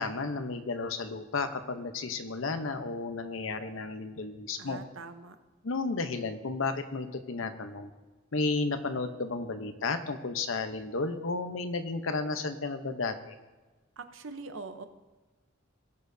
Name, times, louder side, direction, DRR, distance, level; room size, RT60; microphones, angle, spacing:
voice 1, 0.0-4.8 5.6-7.9 8.3-13.3, left 3 dB, 85° left, 9 dB, 0.8 m, -33 dB
voice 2, 4.6-5.4 14.0-14.9, right 3 dB, 75° right, 8 dB, 0.8 m, -43 dB
19.0 x 6.6 x 2.7 m, 1.2 s
head